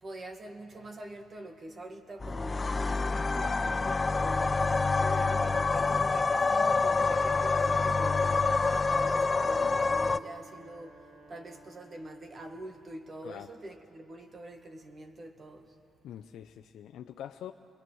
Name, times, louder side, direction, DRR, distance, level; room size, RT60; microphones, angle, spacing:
voice 1, 0.0-15.8, right 1 dB, 40° right, 1.9 m, -45 dB
sound 1, 2.2-10.2, left 4 dB, 30° left, 0.5 m, -27 dB
Wind instrument woodwind instrument, 8.5-12.6, right 3 dB, 70° right, 6.3 m, -55 dB
voice 2, 16.0-17.5, left 10 dB, 80° left, 0.5 m, -44 dB
27.5 x 20.5 x 6.3 m
cardioid pair, 75°, 0 cm